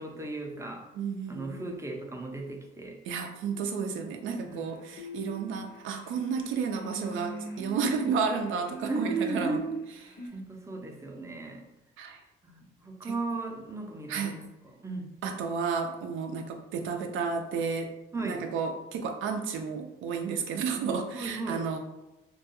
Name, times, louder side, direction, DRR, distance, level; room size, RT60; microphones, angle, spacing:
voice 1, 0.0-0.8 1.3-3.0 4.5-4.6 8.9-9.6 10.3-11.6 12.4-14.4 14.8-15.1 18.1-18.4 21.1-21.6, right 3 dB, 15° right, 1 dB, 0.5 m, -35 dB
voice 2, 1.0-1.7 3.1-9.6 12.0-12.2 13.0-13.1 14.1-14.4 15.2-17.9 18.2-21.8, right 5 dB, 80° right, 5 dB, 0.4 m, -32 dB
sound 1, 4.5-10.3, right 2 dB, 60° left, 0.6 m, -42 dB
2.3 x 2.2 x 2.8 m, 1.0 s
cardioid pair, 90°, 20 cm